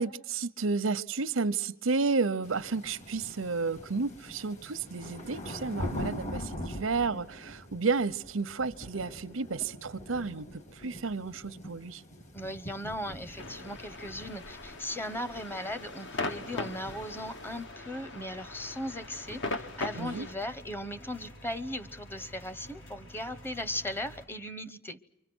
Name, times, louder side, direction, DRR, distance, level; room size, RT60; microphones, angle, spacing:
voice 1, 0.0-12.0 20.0-20.3, right 4 dB, 90° right, 0.8 m, -32 dB
sound 1, 2.4-17.6, equal, 35° left, 1.7 m, -43 dB
voice 2, 12.3-25.0, left 1 dB, 10° left, 0.9 m, -38 dB
sound 2, 13.4-20.3, left 3 dB, 65° left, 1.5 m, -40 dB
sound 3, 15.2-24.2, equal, 80° left, 7.0 m, -52 dB
29.5 x 24.5 x 6.2 m
head